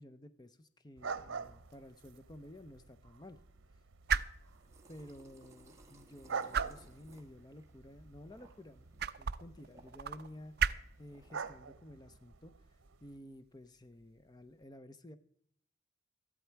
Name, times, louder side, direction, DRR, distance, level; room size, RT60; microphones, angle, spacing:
voice 1, 0.0-3.4 4.9-12.6 13.0-15.2, left 1 dB, 20° left, 12 dB, 0.6 m, -53 dB
sound 1, 1.0-13.2, right 5 dB, 85° right, 0.8 m, -47 dB
sound 2, 1.1-14.6, right 7 dB, 50° right, 0.4 m, -41 dB
sound 3, 4.3-11.5, right 2 dB, 15° right, 1.2 m, -64 dB
14.0 x 11.5 x 4.5 m, 0.67 s
head